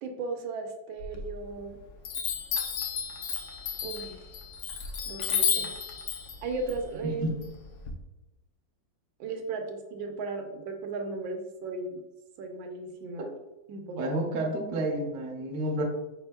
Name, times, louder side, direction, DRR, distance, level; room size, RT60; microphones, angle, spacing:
voice 1, 0.0-1.8 3.8-4.3 5.1-5.7 6.4-7.4 9.2-12.0 12.4-13.3 13.7-14.1, right 3 dB, 85° right, 3 dB, 1.4 m, -36 dB
Chime, 1.0-1.7 2.0-7.9, left 7 dB, 70° left, 1.1 m, -32 dB
voice 2, 14.0-15.8, right 1 dB, 60° right, 1 dB, 0.9 m, -30 dB
4.4 x 4.3 x 2.2 m, 0.99 s
omnidirectional pair, 2.1 m